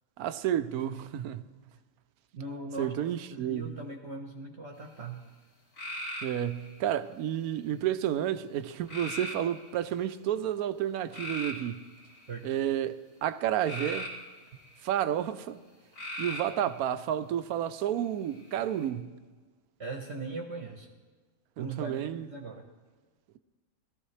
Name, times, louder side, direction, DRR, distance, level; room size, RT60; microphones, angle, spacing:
voice 1, 0.2-1.4 2.8-3.8 6.2-11.8 12.4-14.1 14.8-15.6 16.2-19.1 21.6-22.3, right 10 dB, 85° right, 1.1 m, -31 dB
voice 2, 2.3-2.9 3.3-5.2 12.3-12.5 19.8-20.9 21.6-22.6, right 3 dB, 50° right, 1.2 m, -39 dB
sound 1, 5.8-6.8 8.9-9.7 11.1-12.4 13.6-14.8 15.9-16.6 18.3-18.8, equal, 80° left, 2.9 m, -39 dB
18.5 x 14.0 x 3.2 m
omnidirectional pair, 1.5 m